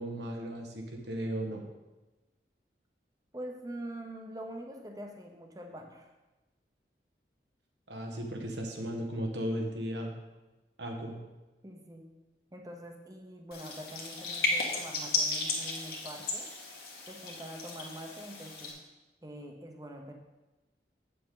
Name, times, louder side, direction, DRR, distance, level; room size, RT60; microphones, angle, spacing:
voice 1, 0.0-1.6 7.9-10.1 10.8-11.2, right 1 dB, 90° right, 1 dB, 1.4 m, -36 dB
voice 2, 3.3-6.1 11.6-12.1 12.5-16.5 17.1-18.8 19.2-20.1, right 1 dB, 20° right, 3 dB, 0.8 m, -44 dB
sound 1, 13.5-18.7, left 3 dB, 60° left, 1.5 m, -34 dB
8.5 x 6.8 x 3.8 m, 1.1 s
head